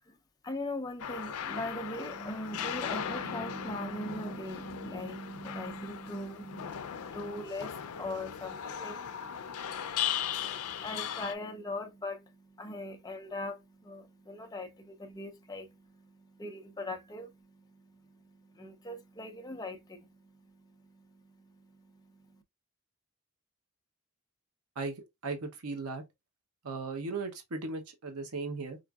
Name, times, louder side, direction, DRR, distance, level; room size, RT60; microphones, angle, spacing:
voice 1, 0.4-22.4, left 1 dB, 15° left, 0.4 m, -41 dB
sound 1, 1.0-11.3, left 9 dB, 85° left, 0.4 m, -38 dB
voice 2, 24.8-26.0 26.6-28.8, right 3 dB, 85° right, 0.8 m, -37 dB
4.8 x 2.5 x 2.3 m
head